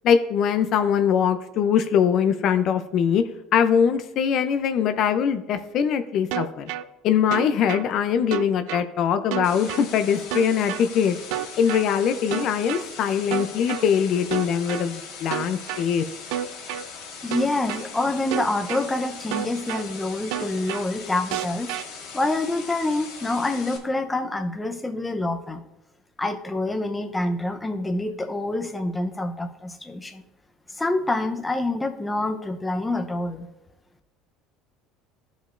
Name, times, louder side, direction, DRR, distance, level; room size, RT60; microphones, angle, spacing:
voice 1, 0.0-3.2 3.5-6.7 7.0-11.2 11.6-16.0, left 8 dB, 55° left, 9 dB, 0.5 m, -22 dB
sound 1, 6.3-6.8 7.3-7.8 8.3-8.8 9.3-9.8 10.3-10.8 11.3-11.8 12.3-12.8 13.3-13.8 14.3-14.8 15.3-15.8 16.3-16.8 17.3-17.8 18.3-18.8 19.3-19.8 20.3-20.8 21.3-21.8, right 12 dB, 80° right, 0.4 m, -29 dB
sound 2, 9.4-23.8, left 5 dB, 90° left, 1.9 m, -40 dB
voice 2, 17.2-21.7 22.1-25.6 26.2-30.2 30.8-33.5, left 2 dB, 10° left, 5 dB, 0.7 m, -26 dB
13.5 x 5.1 x 2.5 m, 0.99 s
cardioid pair, 120°, 0 cm